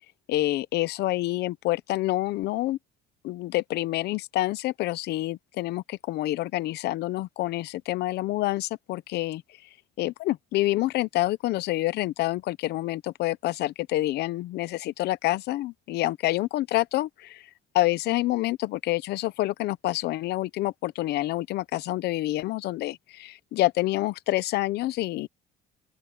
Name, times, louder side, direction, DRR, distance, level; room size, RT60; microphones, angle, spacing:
voice 1, 0.3-2.8 3.2-9.4 10.0-17.5 17.7-25.3, left 17 dB, 75° left, 0.8 m, -27 dB
open air
cardioid pair, 110°, 17 cm